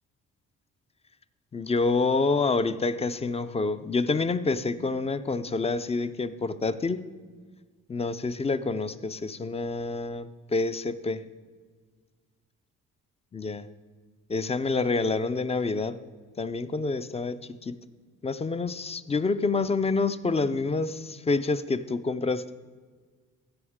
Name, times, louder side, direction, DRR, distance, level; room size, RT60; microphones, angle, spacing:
voice 1, 1.5-7.0 7.9-11.2 13.3-13.7 14.3-16.0 16.4-17.7 18.2-22.5, left 3 dB, 20° left, 13 dB, 0.4 m, -27 dB
15.5 x 6.4 x 3.6 m, 1.5 s
cardioid pair, 90°, 30 cm